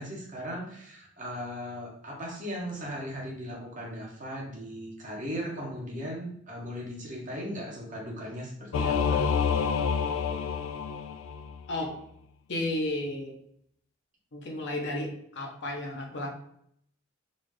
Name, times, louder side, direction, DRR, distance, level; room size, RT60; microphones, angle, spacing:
voice 1, 0.0-9.2, equal, 40° right, -2 dB, 1.0 m, -38 dB
Singing / Musical instrument, 8.7-11.6, left 6 dB, 80° left, 0.3 m, -28 dB
voice 2, 12.5-13.4 14.3-16.4, left 1 dB, 60° left, 1 dB, 0.8 m, -33 dB
3.9 x 2.4 x 3.3 m, 0.69 s
head